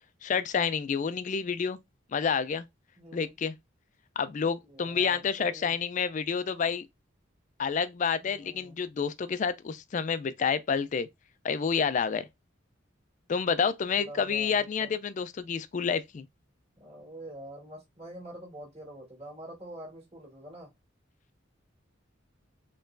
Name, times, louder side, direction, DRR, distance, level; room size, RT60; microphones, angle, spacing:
voice 1, 0.2-1.8 2.1-2.6 3.1-3.5 4.2-6.9 7.6-11.1 11.4-12.3 13.3-16.3, left 6 dB, 40° left, 0.3 m, -29 dB
voice 2, 3.0-3.4 4.4-5.7 8.2-8.8 13.9-14.9 16.8-20.7, right 1 dB, 30° right, 1.7 m, -46 dB
4.4 x 3.1 x 2.5 m
head